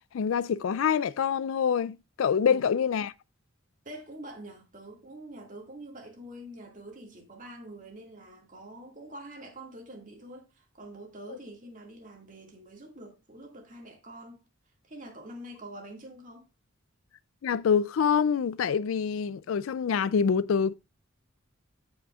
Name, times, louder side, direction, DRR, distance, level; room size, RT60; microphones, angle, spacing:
voice 1, 0.1-3.1 17.4-20.7, left 7 dB, 75° left, 0.4 m, -26 dB
voice 2, 3.9-14.4 14.8-16.5, right 1 dB, 40° right, 2.0 m, -45 dB
15.0 x 5.1 x 2.4 m
head